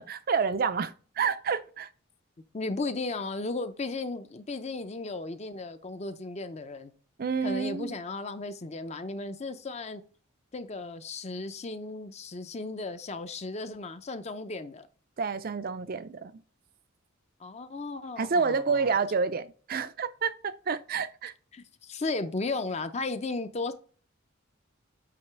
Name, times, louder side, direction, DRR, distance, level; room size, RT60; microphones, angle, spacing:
voice 1, 0.0-1.9 7.2-8.0 15.2-16.4 18.2-21.3, right 5 dB, 45° right, 0.4 m, -29 dB
voice 2, 2.5-6.9 7.4-10.0 10.5-14.9 17.4-18.9 21.5-23.7, left 3 dB, 35° left, 0.6 m, -35 dB
8.6 x 2.9 x 4.6 m
head